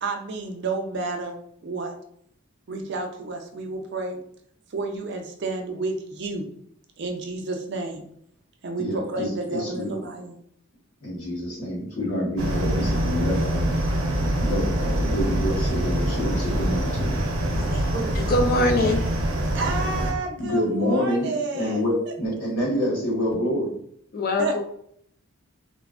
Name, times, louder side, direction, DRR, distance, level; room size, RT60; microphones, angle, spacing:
voice 1, 0.0-2.0 2.7-4.2 4.7-6.5 7.0-8.0 8.6-10.4 17.9-18.1 19.5-21.8 24.4-24.6, right 3 dB, 50° right, 3 dB, 0.4 m, -30 dB
voice 2, 8.8-9.9 11.0-13.7 14.2-17.2 20.4-23.7, equal, 75° left, -5 dB, 1.3 m, -27 dB
sound 1, 12.4-20.1, right 1 dB, 80° right, 0.7 m, -25 dB
voice 3, 18.2-19.0 24.1-24.6, left 1 dB, 45° left, 5 dB, 0.3 m, -23 dB
3.2 x 2.0 x 2.4 m, 0.68 s
head